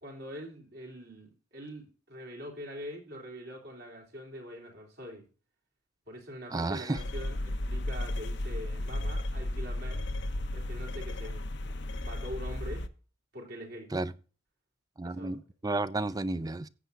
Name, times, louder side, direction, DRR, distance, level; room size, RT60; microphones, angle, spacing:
voice 1, 0.0-5.2 6.1-10.1 10.5-12.8 13.3-13.9 15.0-15.4, equal, 60° right, 3.4 m, -44 dB
voice 2, 6.5-7.0 13.9-14.1 15.0-16.7, right 2 dB, 20° right, 0.4 m, -32 dB
sound 1, 7.0-12.9, left 1 dB, 65° left, 0.8 m, -34 dB
15.0 x 8.2 x 2.6 m
head